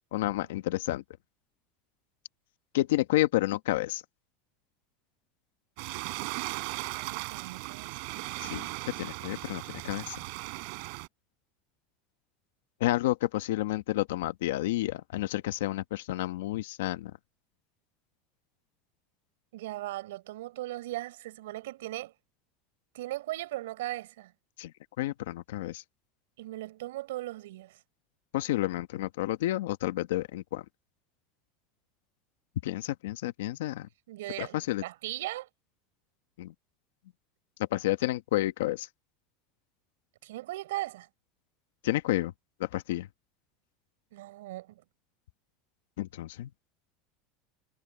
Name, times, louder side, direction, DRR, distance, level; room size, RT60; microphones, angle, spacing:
voice 1, 0.1-1.0 2.7-4.0 8.4-8.7 9.0-10.2 12.8-17.1 24.6-24.7 25.0-25.8 28.3-30.6 32.6-33.9 34.4-34.8 36.4-36.5 37.7-38.9 41.8-42.3 42.6-43.1 46.0-46.5, left 16 dB, 90° left, 1.1 m, -30 dB
sound 1, 5.8-11.1, right 37 dB, 65° right, 5.7 m, -37 dB
voice 2, 6.7-8.0 19.5-22.1 22.9-24.3 26.4-27.8 34.1-35.5 40.2-41.1 44.1-44.8, right 16 dB, 90° right, 4.2 m, -38 dB
supercardioid pair, 125°, 0 cm